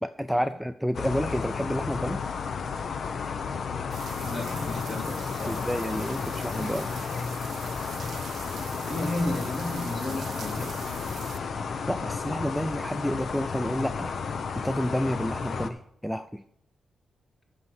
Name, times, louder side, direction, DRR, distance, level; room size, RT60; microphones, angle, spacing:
voice 1, 0.0-2.2 5.5-6.9 11.9-14.1 14.6-16.4, equal, ahead, 10 dB, 0.4 m, -30 dB
sound 1, 0.9-15.7, left 5 dB, 60° left, 0.7 m, -33 dB
sound 2, 3.9-11.4, right 7 dB, 70° right, 0.5 m, -43 dB
voice 2, 4.2-5.6 8.8-10.7, left 1 dB, 35° left, 0 dB, 3.1 m, -33 dB
9.3 x 6.5 x 6.4 m, 0.72 s
cardioid pair, 75°, 0 cm